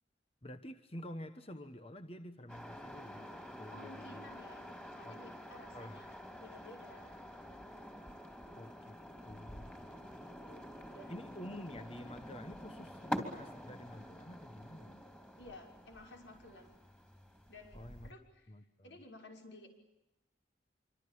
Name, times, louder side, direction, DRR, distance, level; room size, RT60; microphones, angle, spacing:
voice 1, 0.4-4.2 5.0-5.2 5.7-6.0 8.6-9.0 9.2-9.9 11.1-15.1 17.7-18.1 18.5-18.9, left 1 dB, 30° left, 9 dB, 1.2 m, -49 dB
sound 1, 2.5-18.1, equal, 10° left, 3.2 m, -47 dB
voice 2, 3.7-4.6 4.9-6.1 6.4-7.1 9.9-11.2 15.4-16.8 17.5-18.5 18.8-19.7, left 2 dB, 75° left, 3 dB, 6.0 m, -55 dB
26.5 x 25.0 x 8.7 m, 0.96 s
head